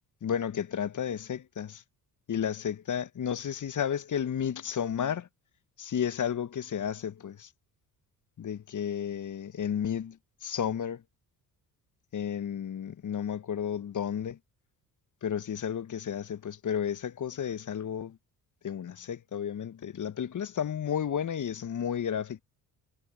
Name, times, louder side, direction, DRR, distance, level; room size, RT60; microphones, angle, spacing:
voice 1, 0.2-1.8 2.3-5.3 5.8-7.5 8.4-11.0 12.1-14.4 15.2-18.2 18.6-22.4, left 8 dB, 40° left, 1.8 m, -32 dB
figure-of-eight pair, 45°, 48 cm